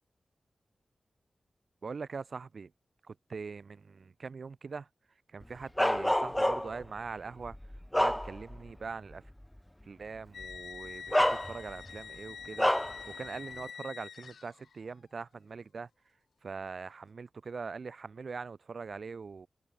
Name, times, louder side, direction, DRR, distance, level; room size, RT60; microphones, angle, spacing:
voice 1, 1.8-2.7 3.0-4.9 5.3-7.6 7.9-9.2 9.9-15.9 16.4-19.5, right 5 dB, 60° right, 1.0 m, -42 dB
Bark, 5.8-6.8 7.4-8.7 9.1-9.3 10.4-10.5 11.1-11.9 12.6-13.0, left 1 dB, 10° left, 0.4 m, -28 dB
sound 1, 10.3-14.8, left 6 dB, 85° left, 0.3 m, -46 dB
wide cardioid pair, 100°, 0 cm